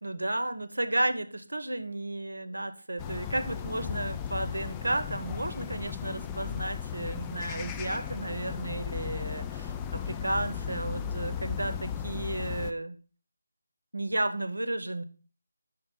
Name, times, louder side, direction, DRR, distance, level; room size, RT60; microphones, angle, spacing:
voice 1, 0.0-13.0 13.9-15.0, right 1 dB, 75° right, 12 dB, 0.7 m, -33 dB
sound 1, 3.0-12.7, left 8 dB, 15° left, 0.3 m, -36 dB
5.6 x 4.3 x 5.2 m, 0.39 s
figure-of-eight pair, 155°, 0 cm